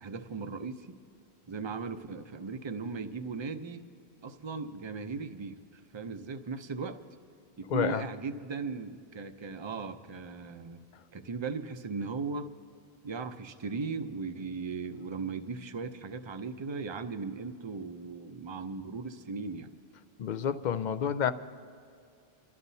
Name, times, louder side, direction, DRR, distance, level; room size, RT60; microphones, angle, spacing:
voice 1, 0.0-1.0 1.5-3.8 4.2-7.0 7.6-10.8 11.1-12.5 13.0-19.7, right 4 dB, 35° right, 8 dB, 0.5 m, -37 dB
voice 2, 7.7-8.0 20.2-21.3, left 8 dB, 55° left, 11 dB, 0.5 m, -29 dB
28.5 x 13.0 x 2.7 m, 2.4 s
omnidirectional pair, 1.1 m